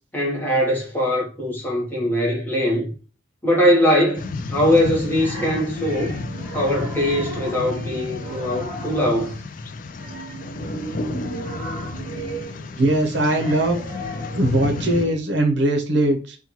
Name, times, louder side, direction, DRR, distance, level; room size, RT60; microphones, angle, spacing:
voice 1, 0.1-2.9 3.4-6.2 6.5-9.4, equal, 10° left, 1.1 m, -21 dB
sound 1, 4.2-15.1, left 3 dB, 45° left, 0.3 m, -32 dB
sound 2, 4.6-9.4 9.9-15.2, right 2 dB, 40° right, 1.1 m, -35 dB
voice 2, 11.1-11.4 12.8-13.8 14.3-16.4, right 1 dB, 65° right, 0.7 m, -21 dB
4.3 x 2.3 x 2.9 m
head